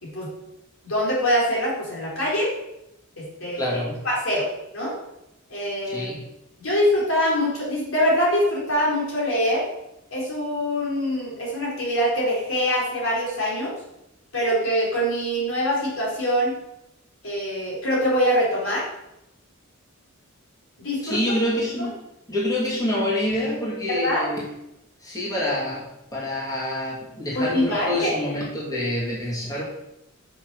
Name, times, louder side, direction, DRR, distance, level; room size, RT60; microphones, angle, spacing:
voice 1, 0.0-0.3 0.8-2.5 3.2-3.7 4.0-4.9 5.5-6.1 6.6-9.6 10.1-13.7 14.3-16.6 17.2-18.9 20.8-21.2 23.9-24.2 27.3-28.1, equal, 70° left, -5 dB, 4.2 m, -24 dB
voice 2, 3.5-4.0 5.9-6.2 21.0-22.0 22.3-24.5 25.0-29.6, left 1 dB, 20° left, -7 dB, 2.5 m, -27 dB
7.3 x 5.8 x 7.0 m, 0.85 s
head